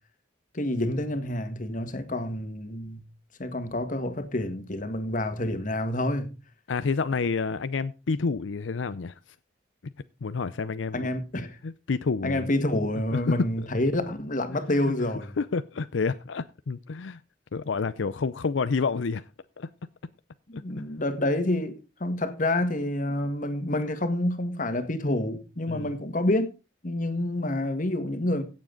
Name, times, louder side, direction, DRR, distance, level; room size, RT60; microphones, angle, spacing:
voice 1, 0.5-3.0 3.4-6.3 10.9-11.6 12.2-15.3 20.5-26.5 26.8-28.4, left 1 dB, 45° left, 1.7 m, -28 dB
voice 2, 6.7-9.2 9.8-9.9 10.2-11.1 11.6-12.5 13.1-13.5 15.4-17.2 17.5-19.3 19.6-19.7 20.5-20.9 25.7-25.9, left 4 dB, 85° left, 0.6 m, -29 dB
16.0 x 7.4 x 3.9 m
head